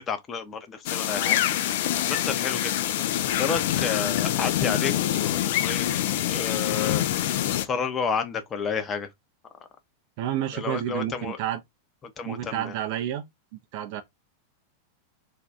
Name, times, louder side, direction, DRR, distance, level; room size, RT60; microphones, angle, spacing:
voice 1, 0.0-2.9 3.4-5.9 6.2-7.0 7.5-9.1 10.5-11.4 12.0-12.8, left 6 dB, 25° left, 0.7 m, -31 dB
sound 1, 0.9-7.7, left 12 dB, 55° left, 0.3 m, -25 dB
voice 2, 10.2-11.6 12.2-13.3 13.7-14.0, right 11 dB, 45° right, 0.5 m, -30 dB
2.7 x 2.3 x 3.4 m
figure-of-eight pair, 90°, 0 cm